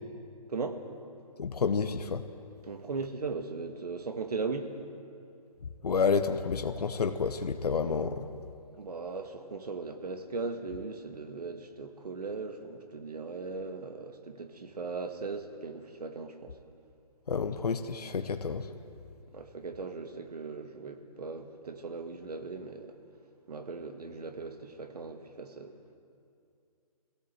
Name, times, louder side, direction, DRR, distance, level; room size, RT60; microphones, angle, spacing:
voice 1, 0.5-0.8 2.6-4.7 8.8-16.5 19.3-23.0 23.5-25.8, right 4 dB, 80° right, 7 dB, 2.0 m, -38 dB
voice 2, 1.4-2.2 5.8-8.3 17.3-18.7, left 5 dB, 80° left, 8 dB, 1.1 m, -29 dB
20.5 x 17.0 x 7.7 m, 2.5 s
hypercardioid pair, 155°, 20 cm